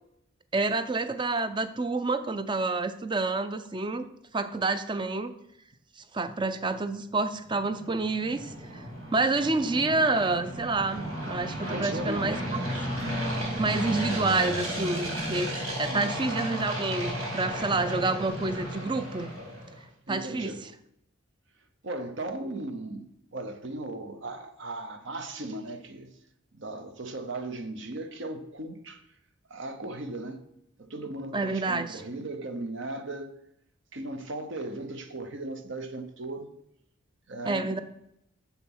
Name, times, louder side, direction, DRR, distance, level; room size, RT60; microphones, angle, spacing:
voice 1, 0.5-4.1 4.3-5.3 6.0-8.8 9.1-12.7 13.6-15.5 15.8-19.3 20.1-20.7 31.3-32.0 37.4-37.8, right 3 dB, 20° right, 0.5 m, -28 dB
sound 1, 7.5-19.8, equal, 85° right, 3.6 m, -34 dB
voice 2, 11.7-12.4 15.9-16.1 20.1-20.6 21.8-26.1 26.5-29.0 29.5-30.4 30.8-33.3 33.9-36.5 37.3-37.8, right 2 dB, 60° right, 0.9 m, -37 dB
7.0 x 5.8 x 6.0 m
head